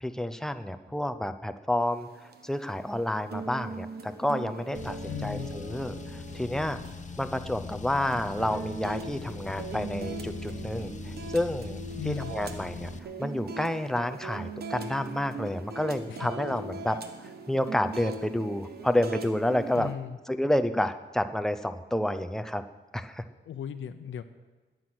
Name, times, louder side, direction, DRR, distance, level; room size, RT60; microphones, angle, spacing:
voice 1, 0.0-2.1 2.4-4.9 5.2-6.8 7.2-11.8 12.1-12.9 13.2-19.9 20.3-22.6 22.9-23.2, left 1 dB, 5° left, 9 dB, 0.6 m, -29 dB
sound 1, 1.8-19.9, right 4 dB, 55° right, 1.2 m, -41 dB
Car, 4.7-13.0, left 5 dB, 40° left, 0.7 m, -41 dB
voice 2, 5.1-5.5 12.0-12.3 16.1-16.3 16.9-17.0 19.7-20.2 23.5-24.2, left 8 dB, 80° left, 8 dB, 0.8 m, -37 dB
21.0 x 7.9 x 6.1 m, 1.3 s
wide cardioid pair, 165°, 20 cm